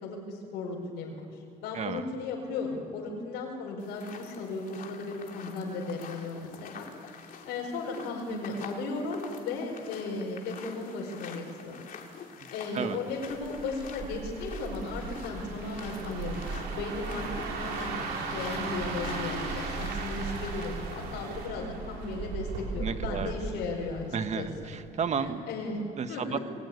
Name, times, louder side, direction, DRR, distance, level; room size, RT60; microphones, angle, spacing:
voice 1, 0.0-1.2 1.6-6.9 7.2-11.8 12.5-24.1 24.3-24.5 25.2-25.8 26.1-26.4, left 3 dB, 85° left, -2 dB, 4.9 m, -36 dB
voice 2, 1.7-2.0 12.7-13.0 22.7-23.3 24.1-25.4 26.0-26.4, right 6 dB, 40° right, 8 dB, 1.7 m, -32 dB
sound 1, 3.8-21.5, left 6 dB, 55° left, 3.3 m, -47 dB
sound 2, 13.3-24.4 24.7-25.0, right 4 dB, 80° right, 6.3 m, -36 dB
27.5 x 20.0 x 9.8 m, 2.9 s
cardioid pair, 110°, 17 cm